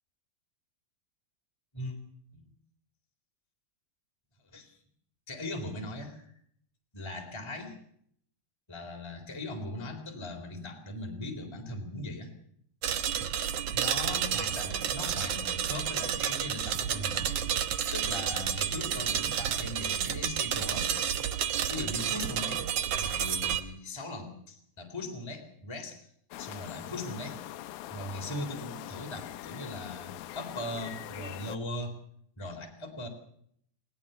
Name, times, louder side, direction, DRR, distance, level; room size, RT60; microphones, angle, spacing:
voice 1, 5.3-6.3 6.9-7.8 8.7-12.3 13.7-17.4 17.9-20.9 21.7-22.6 22.9-26.0 26.4-27.4 27.9-31.9 32.4-33.1, left 1 dB, 5° left, 3 dB, 3.2 m, -39 dB
sound 1, 12.8-23.6, right 9 dB, 85° right, 1.4 m, -31 dB
sound 2, 26.3-31.6, left 13 dB, 75° left, 2.5 m, -43 dB
20.5 x 18.0 x 6.9 m, 0.66 s
omnidirectional pair, 4.5 m